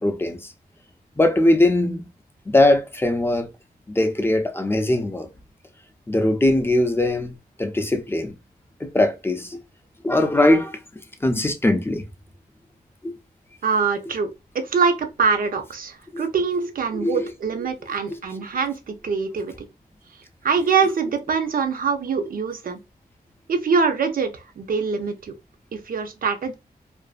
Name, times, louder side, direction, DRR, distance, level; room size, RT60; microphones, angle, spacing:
voice 1, 0.0-0.5 1.2-2.1 2.5-3.5 3.9-5.3 6.1-8.4 8.8-9.6 10.0-10.8 11.2-12.0 13.0-13.2 16.1-16.3 16.9-17.3 18.1-18.2, left 1 dB, 15° left, 0.5 m, -21 dB
voice 2, 13.6-14.3 14.6-19.5 20.4-22.8 23.5-25.3 25.7-26.5, right 5 dB, 65° right, 0.6 m, -24 dB
2.5 x 2.5 x 2.4 m
wide cardioid pair, 100°, 16 cm